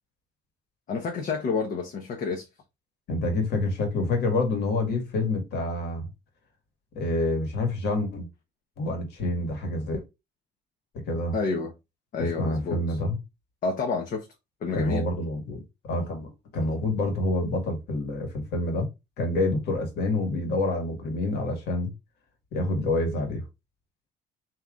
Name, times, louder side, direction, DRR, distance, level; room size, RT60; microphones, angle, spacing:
voice 1, 0.9-2.4 11.3-11.7 12.1-13.0 13.6-14.3 14.6-15.0, left 4 dB, 55° left, 0.9 m, -29 dB
voice 2, 3.1-6.1 7.0-8.3 8.8-10.0 10.9-11.3 12.2-13.2 14.7-18.9 19.2-21.9 22.5-23.4, left 2 dB, 75° left, 1.7 m, -27 dB
3.7 x 3.0 x 3.6 m
cardioid pair, 110°, 17 cm